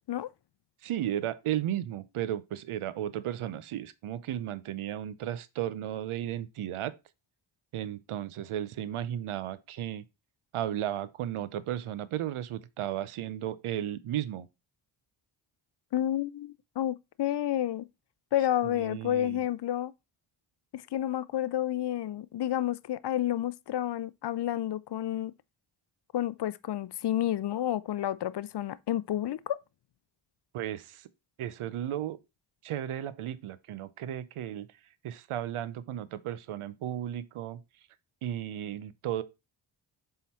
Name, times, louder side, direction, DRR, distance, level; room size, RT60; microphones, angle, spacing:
voice 1, 0.8-6.9 7.7-10.0 10.5-14.5 18.6-19.4 30.5-31.1 31.4-32.2 32.6-34.7 35.0-37.6 38.2-39.2, right 11 dB, 80° right, 0.7 m, -34 dB
voice 2, 15.9-17.8 18.3-19.9 20.7-25.3 26.1-29.6, left 12 dB, 55° left, 0.5 m, -30 dB
7.3 x 3.9 x 4.2 m
supercardioid pair, 40°, 50 cm